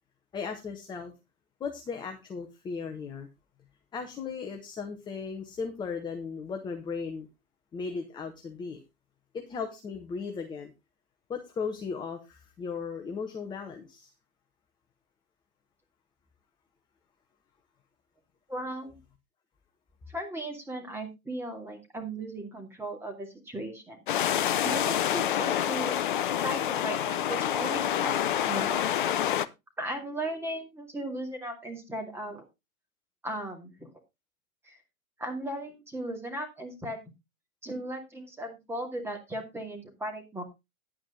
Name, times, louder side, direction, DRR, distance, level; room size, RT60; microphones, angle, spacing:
voice 1, 0.3-1.1 1.6-3.3 3.9-7.3 7.7-8.8 9.3-10.7 11.3-14.1, left 5 dB, 10° left, 5 dB, 0.9 m, -36 dB
voice 2, 18.5-19.0 20.1-24.0 24.6-26.0 26.4-28.9 29.8-32.4 33.2-33.9 34.6-34.8 35.2-37.0 37.6-40.4, right 1 dB, 5° right, 2 dB, 2.3 m, -37 dB
sound 1, 24.1-29.5, left 10 dB, 35° left, 0.5 m, -27 dB
10.5 x 8.8 x 3.8 m, 0.24 s
figure-of-eight pair, 110°, 45 cm